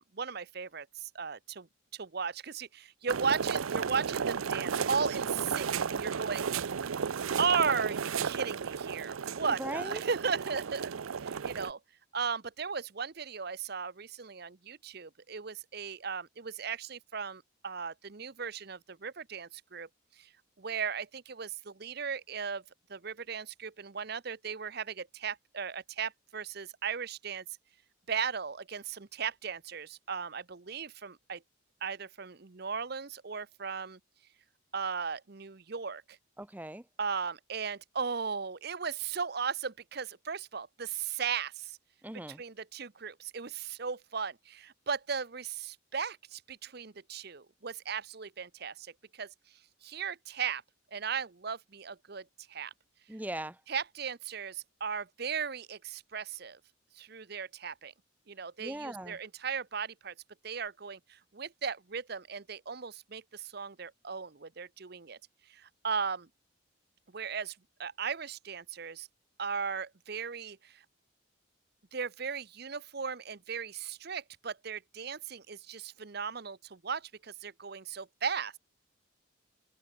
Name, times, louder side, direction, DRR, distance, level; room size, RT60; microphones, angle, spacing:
voice 1, 0.0-1.7 1.9-6.5 7.4-10.9 11.2-11.8 12.1-19.9 20.2-20.3 20.6-22.6 22.9-27.4 28.1-31.4 31.8-34.0 34.7-36.2 37.0-41.8 42.3-49.3 49.8-50.6 50.9-52.7 53.7-56.6 56.9-57.9 58.3-60.1 60.4-65.2 65.5-66.3 67.1-69.1 69.4-70.8 71.9-78.6, right 6 dB, 50° right, 0.8 m, -36 dB
sound 1, 3.1-11.7, right 6 dB, 90° right, 0.6 m, -33 dB
voice 2, 9.6-10.0 36.4-36.8 42.0-42.4 53.1-53.6 58.6-59.2, right 1 dB, 10° right, 0.7 m, -39 dB
open air
head